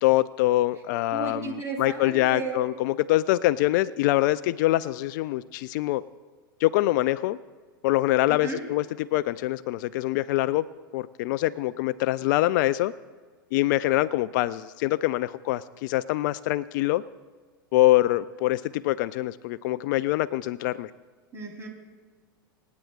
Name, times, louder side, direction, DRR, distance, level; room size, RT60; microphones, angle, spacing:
voice 1, 0.0-6.0 6.6-7.4 7.8-10.6 10.9-12.9 13.5-17.0 17.7-20.9, left 16 dB, 55° left, 16 dB, 0.4 m, -24 dB
voice 2, 1.1-2.6 8.3-8.6 21.3-21.7, right 4 dB, 25° right, 1 dB, 3.3 m, -34 dB
27.5 x 9.3 x 2.4 m, 1.5 s
hypercardioid pair, 100°, 12 cm